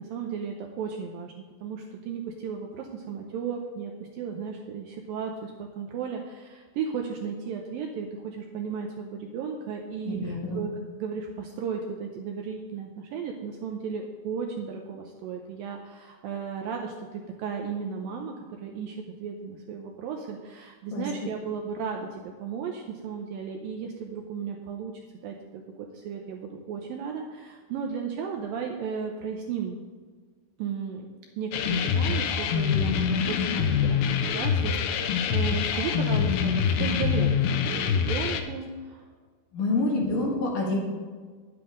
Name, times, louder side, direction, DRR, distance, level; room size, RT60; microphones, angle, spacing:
voice 1, 0.0-10.7 11.0-18.3 18.6-29.8 30.6-31.1 31.4-39.0, right 6 dB, 80° right, 2 dB, 2.1 m, -35 dB
voice 2, 10.1-10.6 20.9-21.1 39.5-40.8, left 2 dB, 60° left, -3 dB, 3.2 m, -27 dB
sound 1, 31.5-38.4, left 7 dB, 80° left, 2.3 m, -25 dB
10.5 x 9.7 x 3.8 m, 1.5 s
omnidirectional pair, 4.7 m